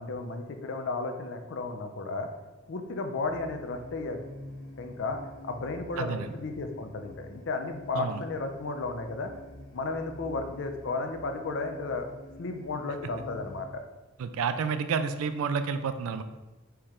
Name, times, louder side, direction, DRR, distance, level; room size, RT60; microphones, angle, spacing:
voice 1, 0.0-2.3 2.7-4.2 4.8-9.3 9.7-12.1 12.4-13.8, left 3 dB, 60° left, 6 dB, 0.5 m, -34 dB
sound 1, 3.2-13.6, left 1 dB, 85° left, 1.1 m, -47 dB
voice 2, 6.0-6.3 7.9-8.2 14.2-16.2, right 5 dB, 85° right, 10 dB, 0.4 m, -30 dB
4.5 x 3.2 x 3.6 m, 1.1 s
head